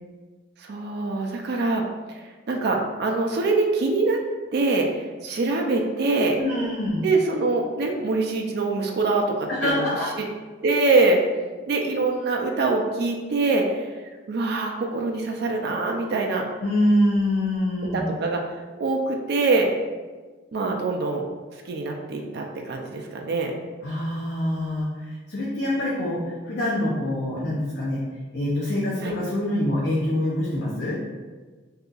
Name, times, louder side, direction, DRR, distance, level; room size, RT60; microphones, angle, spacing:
voice 1, 0.6-4.2 4.5-6.4 7.0-10.3 10.6-11.2 11.7-13.9 14.3-16.5 17.9-18.4 18.8-19.7 20.5-21.2 21.7-23.5 29.0-29.1, right 3 dB, 50° right, 2 dB, 0.3 m, -24 dB
voice 2, 6.4-7.1 9.6-10.1 16.6-18.0 23.8-28.0 28.3-31.0, left 1 dB, 50° left, -7 dB, 0.6 m, -25 dB
2.7 x 2.4 x 3.8 m, 1.3 s
head